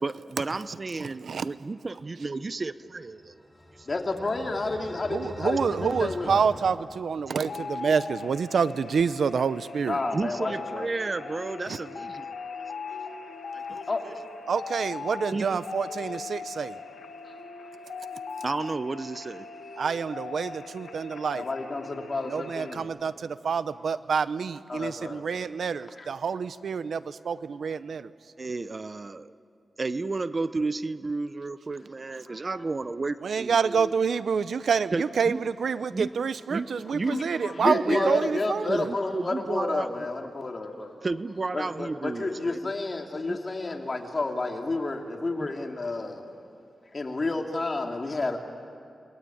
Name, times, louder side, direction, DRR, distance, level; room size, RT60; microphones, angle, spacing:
voice 1, 0.0-3.4 3.7-3.9 7.3-7.4 7.9-8.0 10.1-12.3 13.5-14.1 15.3-15.6 18.4-19.5 28.4-29.3 29.8-33.9 34.9-35.4 35.9-36.1 36.5-37.2 37.6-38.1 38.7-39.9 41.0-42.7 43.3-43.4 45.4-45.5, right 3 dB, 45° right, 13 dB, 0.8 m, -32 dB
voice 2, 1.0-1.5 5.1-10.0 11.7-11.8 14.5-16.8 19.8-21.5 22.3-28.1 33.2-38.9, right 6 dB, 80° right, 14 dB, 0.8 m, -27 dB
sound 1, 3.1-7.7, equal, 5° left, 3.7 m, -43 dB
voice 3, 3.9-6.4 9.9-10.9 13.9-14.0 17.2-17.3 21.3-22.9 24.7-25.2 25.9-26.1 32.3-32.4 37.1-40.9 41.5-46.2 46.9-48.4, left 3 dB, 45° left, 2 dB, 3.0 m, -30 dB
sound 2, 7.5-22.8, left 4 dB, 85° left, 1.7 m, -40 dB
30.0 x 21.0 x 8.7 m, 2.5 s
cardioid pair, 70°, 0 cm